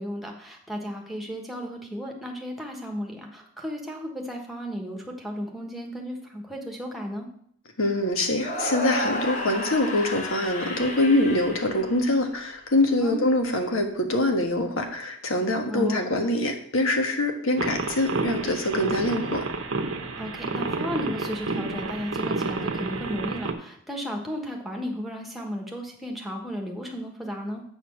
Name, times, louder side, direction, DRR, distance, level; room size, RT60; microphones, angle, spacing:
voice 1, 0.0-7.3 13.0-13.3 15.7-16.2 20.2-27.6, equal, ahead, 0 dB, 1.2 m, -34 dB
voice 2, 7.8-19.5, left 1 dB, 70° left, 4 dB, 1.4 m, -24 dB
sound 1, 8.4-12.5, left 1 dB, 35° left, 1.3 m, -32 dB
sound 2, 17.6-23.5, right 3 dB, 60° right, 0.9 m, -30 dB
8.3 x 4.3 x 7.0 m, 0.65 s
head